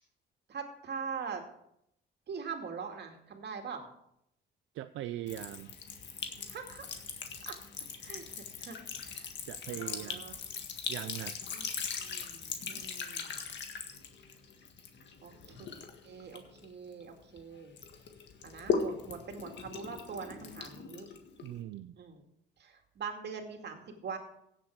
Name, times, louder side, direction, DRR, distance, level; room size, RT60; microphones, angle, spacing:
voice 1, 0.5-1.4 2.3-3.9 6.5-6.9 7.5-7.6 8.0-8.2 8.6-9.3 9.7-10.4 11.5-11.7 12.0-13.5 15.2-15.7 16.0-17.7 18.4-21.1 22.0-22.2 22.6-24.2, right 6 dB, 60° right, 4 dB, 2.4 m, -43 dB
voice 2, 4.7-5.8 9.5-10.3 10.9-11.4 21.4-22.0, right 13 dB, 85° right, 10 dB, 0.5 m, -40 dB
Sink (filling or washing) / Trickle dribble, 5.3-17.4 17.8-21.6, left 6 dB, 65° left, 1.8 m, -39 dB
16.5 x 7.6 x 4.8 m, 0.76 s
cardioid pair, 90°, 20 cm